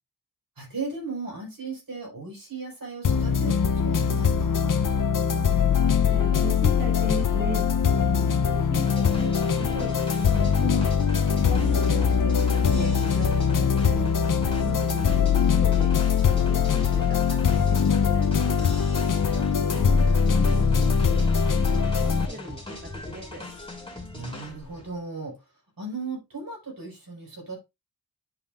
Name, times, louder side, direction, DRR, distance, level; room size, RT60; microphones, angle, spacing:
voice 1, 0.6-4.7 19.3-19.9 24.1-25.3 25.8-27.6, right 3 dB, 65° right, 4.6 m, -36 dB
sound 1, 3.0-22.3, left 6 dB, 60° left, 0.7 m, -22 dB
voice 2, 6.0-7.7 8.4-10.9 11.3-14.1 14.4-15.9 16.2-18.8 19.7-20.6 20.9-21.2 21.5-23.4, right 1 dB, 25° right, 2.0 m, -38 dB
sound 2, 8.7-24.9, left 1 dB, 15° left, 3.2 m, -40 dB
10.5 x 5.6 x 2.5 m
wide cardioid pair, 70°, 37 cm